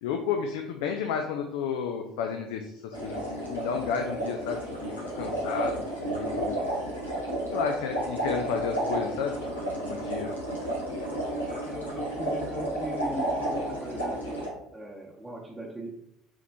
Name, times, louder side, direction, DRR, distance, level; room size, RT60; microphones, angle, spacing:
voice 1, 0.0-6.6 7.5-10.4, left 6 dB, 70° left, 4 dB, 0.4 m, -32 dB
sound 1, 2.9-14.5, right 1 dB, 90° left, 0.9 m, -32 dB
voice 2, 11.4-15.9, right 1 dB, 10° right, -4 dB, 0.8 m, -39 dB
6.9 x 3.0 x 2.2 m, 0.82 s
figure-of-eight pair, 60°, 0 cm